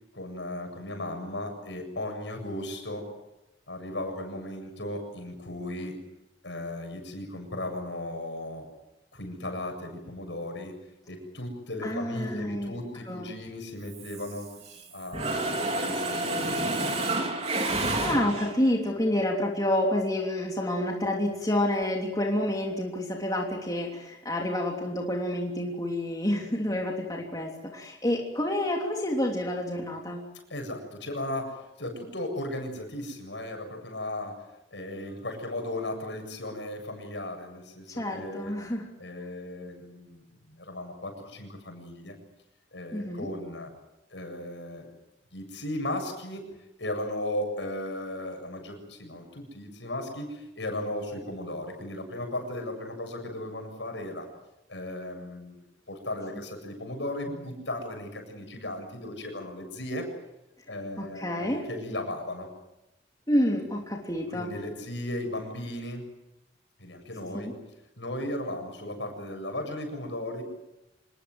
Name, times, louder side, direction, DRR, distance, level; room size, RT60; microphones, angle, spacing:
voice 1, 0.1-3.1 3.7-6.0 6.4-8.7 9.1-10.7 11.1-14.5 14.9-17.1 30.5-34.4 34.7-38.5 39.0-42.2 42.7-43.7 44.1-44.9 45.3-46.4 46.8-54.3 54.7-60.1 60.7-62.5 64.3-66.0 66.8-67.6 68.0-70.4, left 1 dB, 75° left, 5 dB, 7.6 m, -36 dB
voice 2, 11.8-12.8 13.1-13.3 18.0-30.2 38.0-38.9 42.9-43.3 61.0-61.7 63.3-64.5 67.3-67.5, left 1 dB, 20° left, 0 dB, 3.2 m, -28 dB
Mechanisms, 13.9-14.8 15.1-18.7, right 2 dB, 35° right, 3.9 m, -29 dB
26.5 x 21.5 x 7.9 m, 0.95 s
head